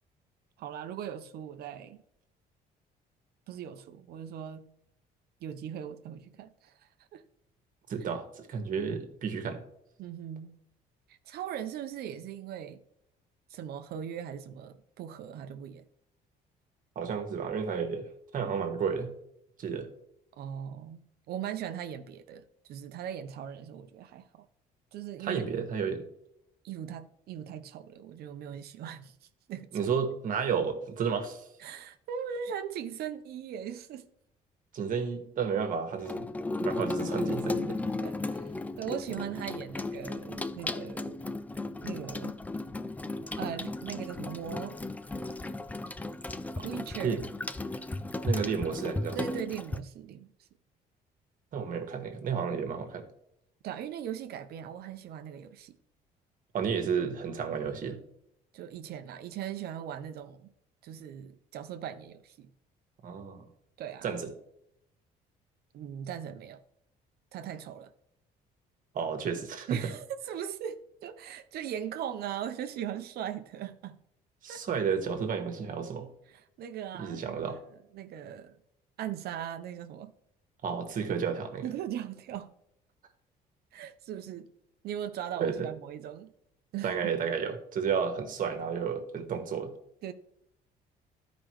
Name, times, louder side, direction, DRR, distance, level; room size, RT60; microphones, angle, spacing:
voice 1, 0.6-2.0 3.5-4.7 5.4-7.2 10.0-10.6 11.2-12.8 13.5-15.8 20.4-24.5 24.9-25.4 26.6-29.9 31.6-34.0 38.0-41.2 41.8-42.4 43.2-44.8 46.6-47.2 49.1-50.3 53.6-55.8 58.5-60.5 60.8-62.5 63.8-64.1 65.7-66.6 67.3-67.9 69.7-74.0 74.5-74.7 76.3-77.6 77.9-78.6 79.0-80.1 81.6-82.5 83.7-84.5 84.8-86.3 86.7-87.1 90.0-90.1, right 9 dB, 70° right, 0.7 m, -39 dB
voice 2, 7.9-9.6 16.9-18.1 18.3-19.1 19.6-19.9 25.2-26.1 29.7-31.4 34.7-36.3 36.6-37.8 46.6-46.7 47.0-47.2 48.2-49.2 51.5-53.1 56.5-58.0 63.0-63.4 64.0-64.3 68.9-69.8 74.4-76.1 76.9-77.6 80.6-81.7 85.4-85.7 86.8-89.7, right 6 dB, 55° right, 1.5 m, -32 dB
Water tap faucet / Sink (filling or washing), 36.0-49.8, left 2 dB, 10° left, 0.4 m, -35 dB
12.5 x 5.1 x 3.1 m
cardioid pair, 110°, 17 cm